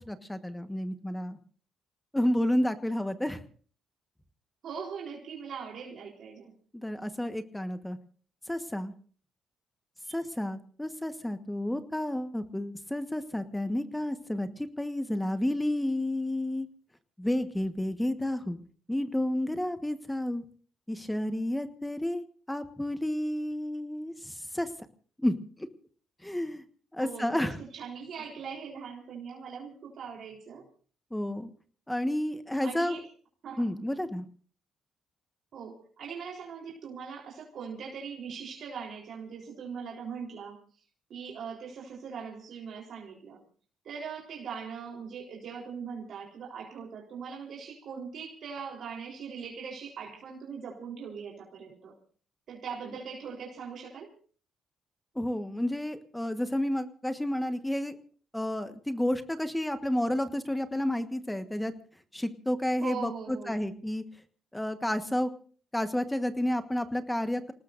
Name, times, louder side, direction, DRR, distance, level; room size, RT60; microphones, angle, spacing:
voice 1, 0.1-1.4 2.1-3.4 6.7-8.0 8.5-8.9 10.1-16.7 17.2-18.6 18.9-20.4 20.9-24.7 25.2-25.7 26.2-26.6 26.9-27.6 31.1-31.5 31.9-33.0 33.6-34.2 55.1-58.0 58.3-61.7 62.1-64.0 64.5-65.3 65.7-67.5, left 1 dB, 5° left, 9 dB, 1.3 m, -31 dB
voice 2, 4.6-6.5 10.1-10.2 27.0-30.6 32.6-33.0 33.4-33.7 35.5-40.6 41.1-43.4 43.8-51.9 52.5-54.1 62.8-63.6, right 6 dB, 65° right, -2 dB, 3.9 m, -41 dB
29.0 x 19.0 x 2.6 m, 0.43 s
cardioid pair, 90°, 0 cm